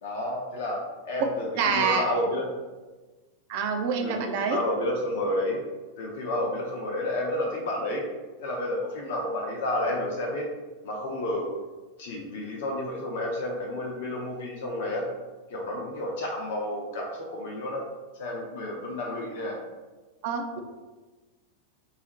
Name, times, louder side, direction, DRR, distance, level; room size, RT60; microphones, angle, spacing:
voice 1, 0.0-2.5 4.0-4.1 4.4-5.6 6.0-8.0 8.4-10.4 10.8-11.5 12.0-15.1 15.5-17.9 18.2-19.6, left 1 dB, 55° left, -2 dB, 0.5 m, -30 dB
voice 2, 1.6-2.0 3.5-4.6 20.2-20.6, right 5 dB, 50° right, 4 dB, 0.4 m, -26 dB
3.8 x 2.0 x 2.8 m, 1.2 s
figure-of-eight pair, 90°, 0 cm